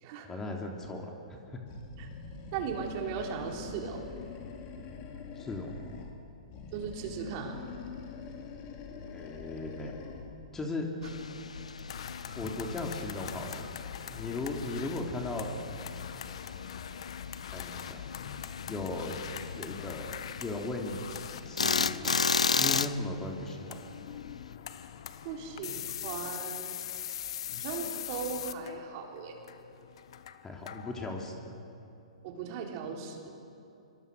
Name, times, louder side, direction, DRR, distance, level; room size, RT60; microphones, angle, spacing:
voice 1, 0.3-1.6 5.3-5.8 9.1-9.9 10.5-10.9 11.5-11.6 12.3-13.6 14.1-15.5 17.5-18.0 18.6-19.2 19.6-21.0 21.4-22.1 22.6-24.0 30.4-31.6, left 2 dB, 15° left, 1 dB, 3.1 m, -37 dB
Animal, 1.7-6.2 6.5-10.4, left 5 dB, 35° left, 3.7 m, -44 dB
voice 2, 2.5-4.0 6.7-7.6 25.2-26.8 27.6-29.3 32.2-33.3, right 6 dB, 40° right, 1 dB, 3.8 m, -37 dB
sound 1, 11.0-24.5, left 5 dB, 80° left, 0.7 m, -35 dB
sound 2, 11.9-31.1, left 9 dB, 55° left, 1.2 m, -42 dB
26.5 x 24.0 x 6.5 m, 2.7 s
figure-of-eight pair, 115°, 3 cm